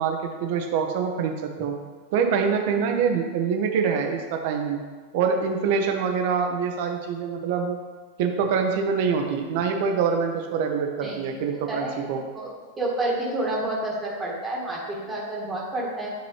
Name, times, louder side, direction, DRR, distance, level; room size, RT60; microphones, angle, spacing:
voice 1, 0.0-1.8 2.1-4.8 5.1-7.8 8.2-12.2, right 6 dB, 50° right, 4 dB, 0.8 m, -25 dB
voice 2, 11.0-11.3 11.7-12.5 12.8-16.1, right 1 dB, 15° right, -4 dB, 1.4 m, -29 dB
9.4 x 4.1 x 3.2 m, 1.4 s
figure-of-eight pair, 90°, 0 cm